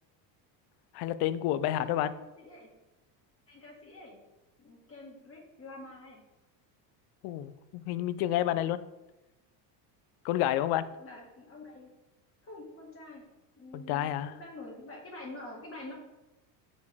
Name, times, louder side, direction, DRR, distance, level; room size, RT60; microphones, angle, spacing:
voice 1, 0.9-2.1 7.2-8.8 10.2-10.9 13.7-14.3, left 12 dB, 50° left, 0.5 m, -29 dB
voice 2, 1.6-2.7 3.5-4.2 4.6-6.2 11.0-11.9 12.4-13.2 13.6-15.9, left 2 dB, 25° left, 1.9 m, -47 dB
6.5 x 4.8 x 3.5 m
supercardioid pair, 120°, 49 cm